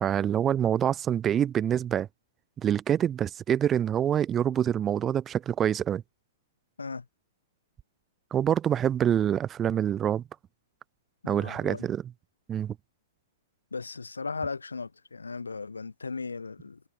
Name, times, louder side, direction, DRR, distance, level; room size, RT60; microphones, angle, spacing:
voice 1, 0.0-2.1 2.6-6.0 8.3-10.2 11.3-12.0 12.5-12.8, right 9 dB, 20° right, 1.0 m, -26 dB
voice 2, 11.2-11.9 13.7-16.8, left 4 dB, 75° left, 1.7 m, -36 dB
figure-of-eight pair, 110°, 0 cm